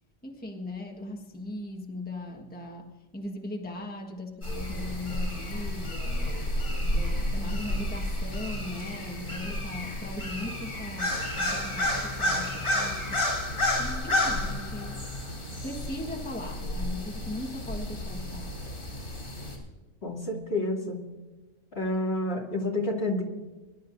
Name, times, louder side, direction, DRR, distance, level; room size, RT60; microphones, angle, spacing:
voice 1, 0.2-6.6 6.8-13.5 13.8-15.1 15.5-18.6, left 2 dB, 5° left, 1 dB, 1.4 m, -39 dB
sound 1, 4.4-19.6, left 1 dB, 90° left, 4.4 m, -31 dB
voice 2, 20.0-21.0 21.7-23.2, left 1 dB, 50° left, -1 dB, 2.8 m, -29 dB
24.0 x 12.0 x 2.6 m, 1.2 s
omnidirectional pair, 1.4 m